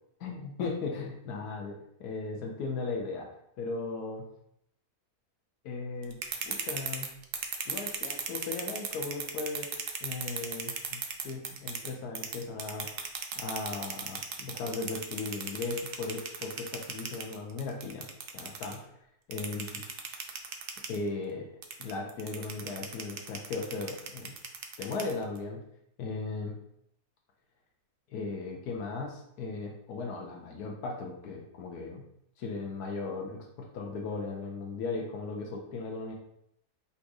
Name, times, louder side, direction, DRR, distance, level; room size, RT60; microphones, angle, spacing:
voice 1, 0.2-3.3 3.6-4.3 5.6-7.1 7.7-9.7 10.0-12.9 13.4-18.1 18.3-18.8 19.3-19.8 20.9-21.5 21.8-24.3 24.8-25.6 26.0-26.5 28.1-32.0 32.4-36.1, left 3 dB, 80° left, 0 dB, 1.2 m, -37 dB
sound 1, 6.0-11.9 12.1-18.7 19.3-21.0 21.6-25.4, right 6 dB, 85° right, 0.5 m, -36 dB
3.5 x 2.7 x 4.6 m, 0.74 s
omnidirectional pair, 1.6 m